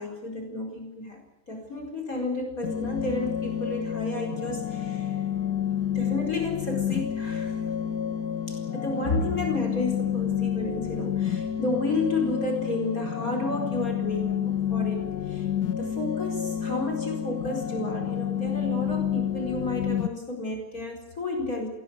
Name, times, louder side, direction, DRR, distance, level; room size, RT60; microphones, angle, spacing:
voice 1, 0.0-5.3 5.9-7.6 8.5-15.5 15.8-21.7, left 2 dB, 45° left, 2 dB, 5.0 m, -31 dB
sound 1, 2.6-20.1, left 9 dB, 60° left, 1.4 m, -29 dB
25.5 x 17.5 x 8.0 m, 0.95 s
omnidirectional pair, 2.2 m